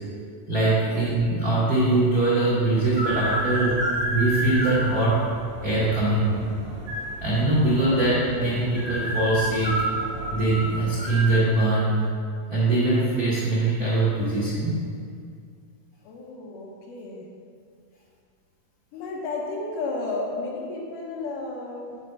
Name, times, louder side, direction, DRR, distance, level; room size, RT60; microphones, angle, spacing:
voice 1, 0.5-3.8 4.1-5.3 5.6-6.4 7.2-9.8 10.3-12.0 12.5-14.8 21.9-22.0, right 2 dB, 80° right, -8 dB, 0.8 m, -22 dB
sound 1, 2.7-11.3, equal, 40° right, 2.2 m, -30 dB
voice 2, 16.0-17.3 18.9-21.9, left 3 dB, 75° left, -2 dB, 2.6 m, -33 dB
6.5 x 4.4 x 6.5 m, 2.2 s
omnidirectional pair, 3.9 m